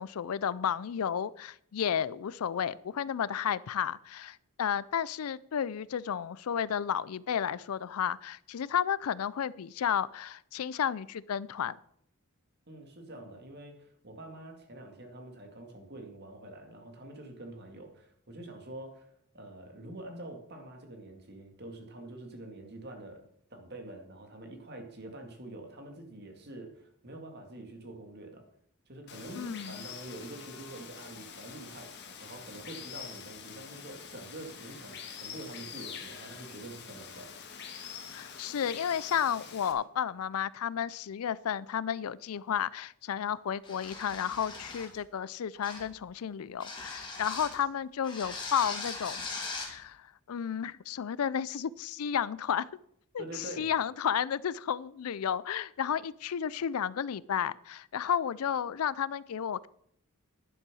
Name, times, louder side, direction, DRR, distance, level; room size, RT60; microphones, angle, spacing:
voice 1, 0.0-11.8 29.4-29.8 38.1-49.3 49.7-50.0 50.3-52.7 53.1-59.7, left 8 dB, 80° left, 20 dB, 0.4 m, -32 dB
voice 2, 12.7-23.2 23.5-28.4 28.9-37.3 53.2-53.7, right 1 dB, 50° right, 4 dB, 2.3 m, -46 dB
Water, 29.1-39.7, left 7 dB, 50° left, 1.6 m, -45 dB
sound 1, 43.6-45.0 45.6-46.0 46.6-47.6 48.0-49.7, left 3 dB, 20° left, 2.7 m, -40 dB
10.5 x 7.5 x 6.2 m, 0.68 s
head